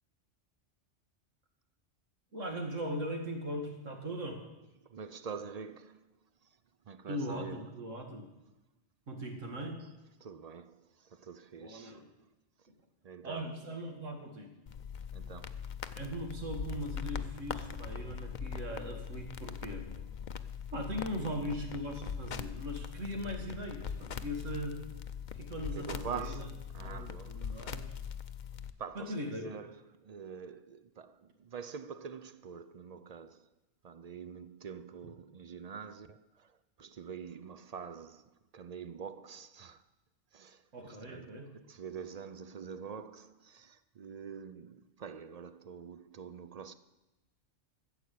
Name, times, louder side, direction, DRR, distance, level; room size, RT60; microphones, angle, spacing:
voice 1, 2.3-4.4 7.1-8.3 9.1-9.8 11.5-12.0 13.2-14.5 16.0-19.9 20.7-24.8 25.3-26.5 26.8-27.9 29.0-29.5 40.7-41.5, equal, 80° right, 2.4 m, -39 dB
voice 2, 4.8-6.1 6.4-6.6 6.9-7.8 9.5-9.9 10.2-12.0 13.0-13.5 15.1-15.7 21.1-21.2 25.7-27.9 28.8-33.5 33.8-39.8 40.3-46.7, right 6 dB, 55° right, 0.4 m, -46 dB
sound 1, 14.7-28.7, left 7 dB, 50° left, 0.6 m, -41 dB
14.0 x 7.7 x 8.3 m
omnidirectional pair, 1.3 m